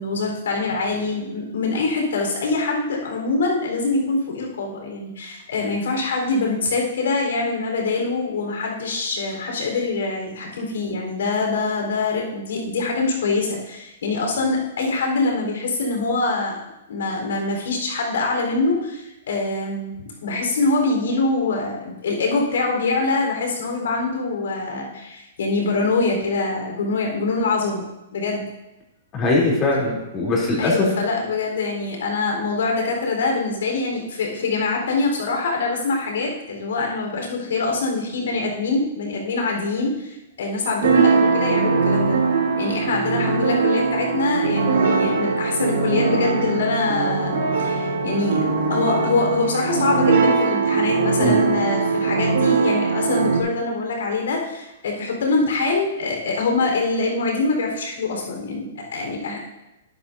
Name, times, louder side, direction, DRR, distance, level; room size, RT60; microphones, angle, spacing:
voice 1, 0.0-16.6 16.9-27.8 28.1-28.4 30.6-42.2 42.6-59.4, left 3 dB, 85° left, 0 dB, 4.2 m, -24 dB
voice 2, 29.1-30.9 51.2-51.4, left 2 dB, 25° left, -4 dB, 3.2 m, -21 dB
sound 1, 40.8-53.4, right 4 dB, 80° right, 3.0 m, -21 dB
12.5 x 11.0 x 2.7 m, 0.94 s
hypercardioid pair, 155°, 0 cm